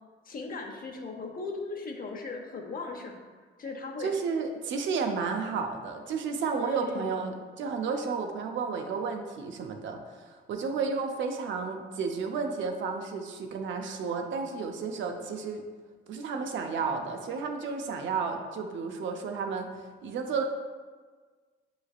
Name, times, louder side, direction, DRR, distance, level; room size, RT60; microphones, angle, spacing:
voice 1, 0.2-3.2 3.6-4.1 6.5-7.2, left 3 dB, 45° left, 2 dB, 0.8 m, -38 dB
voice 2, 4.0-15.6 16.1-19.7 20.0-20.4, right 5 dB, 70° right, 4 dB, 0.6 m, -32 dB
6.8 x 3.2 x 2.4 m, 1.5 s
cardioid pair, 90°, 20 cm